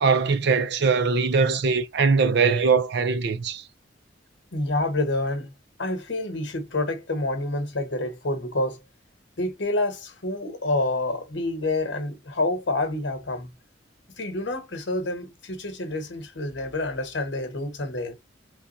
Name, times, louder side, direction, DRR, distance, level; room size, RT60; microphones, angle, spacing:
voice 1, 0.0-3.6, right 5 dB, 65° right, 0.5 m, -21 dB
voice 2, 4.5-5.5 5.8-8.8 9.4-13.5 14.2-18.1, left 2 dB, 70° left, 1.1 m, -28 dB
3.3 x 2.3 x 4.1 m
head